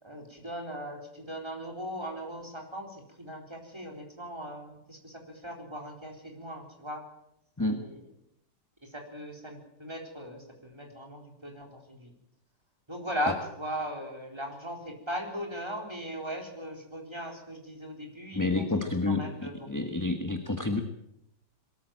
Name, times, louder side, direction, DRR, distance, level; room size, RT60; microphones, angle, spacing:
voice 1, 0.0-7.1 7.6-8.0 8.8-12.1 12.9-19.7, equal, 15° right, 2 dB, 4.1 m, -38 dB
voice 2, 18.3-19.3 19.7-20.8, left 2 dB, 10° left, 6 dB, 1.3 m, -29 dB
23.0 x 13.5 x 8.8 m, 0.80 s
omnidirectional pair, 1.8 m